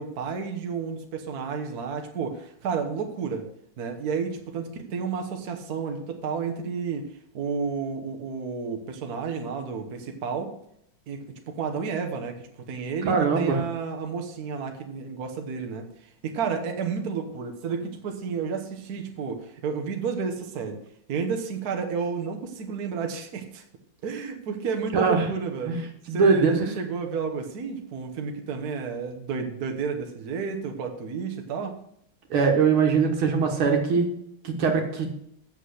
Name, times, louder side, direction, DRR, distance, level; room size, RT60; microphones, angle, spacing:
voice 1, 0.0-3.5 3.8-7.0 7.3-10.5 11.1-15.9 16.2-20.8 21.1-23.6 24.0-25.8 26.1-31.8, right 5 dB, 50° right, 4 dB, 1.4 m, -31 dB
voice 2, 13.0-13.6 24.9-25.3 25.7-25.8 26.1-26.7 32.3-34.1 34.4-35.1, right 5 dB, 80° right, 2 dB, 2.3 m, -22 dB
8.2 x 7.0 x 6.4 m, 0.72 s
omnidirectional pair, 2.3 m